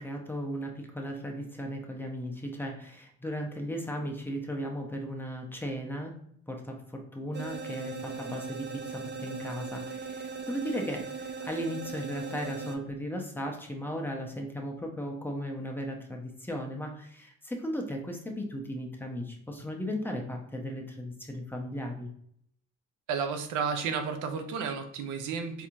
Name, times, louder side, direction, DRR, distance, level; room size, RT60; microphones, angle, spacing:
voice 1, 0.0-6.2 6.5-22.1, equal, 5° left, 1 dB, 0.7 m, -36 dB
sound 1, 7.3-12.8, right 5 dB, 35° right, 0.5 m, -39 dB
voice 2, 23.1-25.7, right 6 dB, 90° right, 7 dB, 0.6 m, -32 dB
4.2 x 2.9 x 2.5 m, 0.69 s
cardioid pair, 90°, 30 cm